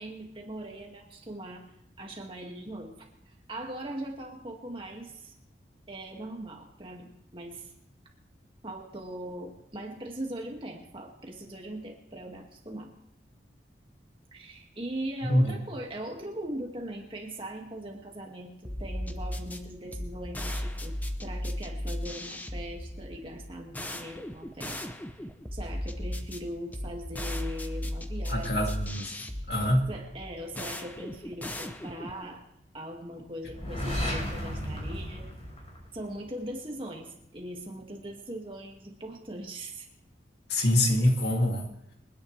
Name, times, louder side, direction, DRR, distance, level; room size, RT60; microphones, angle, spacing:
voice 1, 0.0-1.6 2.0-5.3 5.9-7.7 8.6-12.9 14.3-20.9 21.2-24.8 25.5-28.7 29.9-32.4 32.7-35.3 35.9-39.9, right 1 dB, 30° right, 0 dB, 2.2 m, -40 dB
voice 2, 15.2-15.6 28.3-29.1 29.5-29.8 40.5-41.7, left 1 dB, 65° left, 1 dB, 2.5 m, -25 dB
sound 1, 18.6-32.3, left 1 dB, 10° left, 0.7 m, -36 dB
sound 2, 33.5-36.3, equal, 35° left, 4.1 m, -34 dB
27.0 x 10.0 x 3.4 m, 0.79 s
head